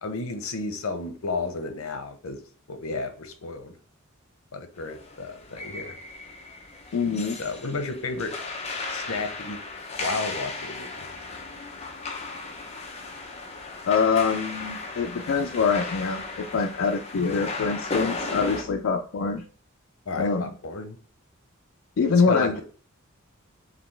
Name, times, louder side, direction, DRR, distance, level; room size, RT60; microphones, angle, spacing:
voice 1, 0.0-2.4 2.7-3.7 4.5-6.0 7.4-8.4 8.9-9.6 10.0-11.1 20.1-21.0 22.1-22.6, left 3 dB, 90° left, 8 dB, 0.8 m, -32 dB
sound 1, 4.8-18.6, left 3 dB, 30° left, 0.8 m, -36 dB
voice 2, 6.9-7.4 13.9-19.4 20.1-20.5 22.0-22.6, left 5 dB, 70° left, 3 dB, 0.4 m, -24 dB
5.1 x 3.0 x 3.2 m, 0.42 s
head